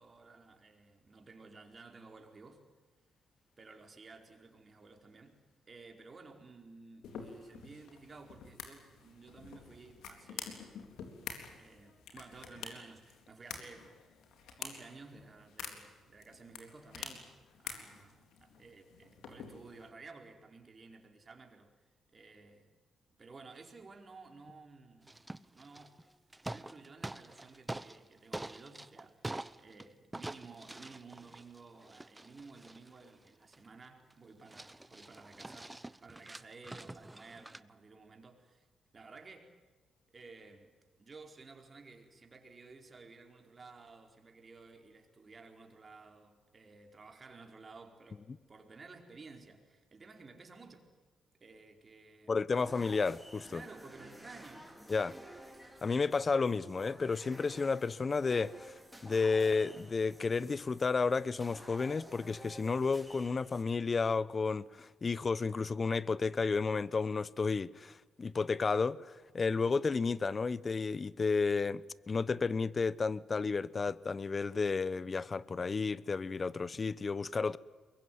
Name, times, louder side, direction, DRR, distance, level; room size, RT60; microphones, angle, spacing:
voice 1, 0.0-2.6 3.6-10.7 11.5-14.0 14.6-17.3 17.6-21.7 22.1-22.7 23.2-25.2 25.5-26.0 26.5-38.7 38.9-39.6 40.1-50.9 51.4-52.6 53.5-54.7 77.4-77.6, right 4 dB, 40° right, 4.7 m, -54 dB
sound 1, 7.0-19.9, left 6 dB, 80° left, 3.9 m, -48 dB
sound 2, 25.1-26.0 26.3-28.0 28.3-29.8 30.1-33.7 34.1-34.2 34.5-37.6, right 2 dB, 15° right, 1.0 m, -45 dB
voice 2, 52.3-53.6 54.9-55.2 55.8-58.7 59.0-77.6, left 4 dB, 40° left, 0.9 m, -32 dB
sound 3, 52.6-63.6, right 1 dB, ahead, 4.7 m, -53 dB
23.5 x 22.0 x 9.5 m
supercardioid pair, 60°, 0 cm